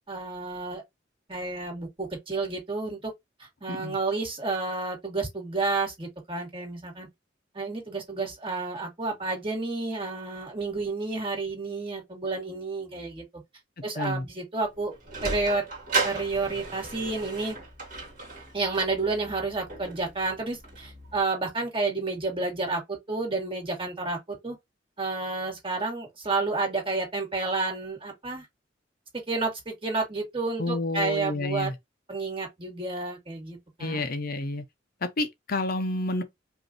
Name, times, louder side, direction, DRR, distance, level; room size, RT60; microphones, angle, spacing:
voice 1, 0.1-0.8 1.3-3.1 3.4-7.1 7.5-13.2 13.8-14.9 15.2-15.6 16.0-17.6 18.5-24.6 25.0-28.5 29.1-31.7 32.1-34.0, right 3 dB, 30° right, 2.2 m, -30 dB
Sliding door, 14.6-21.2, right 4 dB, 45° right, 2.0 m, -35 dB
voice 2, 30.6-31.8 33.8-34.6 35.0-36.2, left 2 dB, 50° left, 0.6 m, -29 dB
5.2 x 2.6 x 2.8 m
head